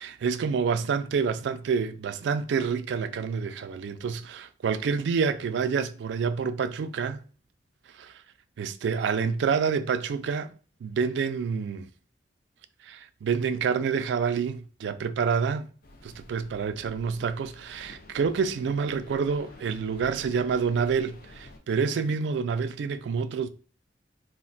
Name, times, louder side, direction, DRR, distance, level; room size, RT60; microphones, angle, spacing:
voice 1, 0.0-7.2 7.9-8.1 8.6-11.9 12.8-15.7 16.0-23.5, right 6 dB, 80° right, 0.3 m, -28 dB
sound 1, 15.8-21.6, left 2 dB, 55° left, 0.5 m, -50 dB
2.4 x 2.2 x 3.8 m
head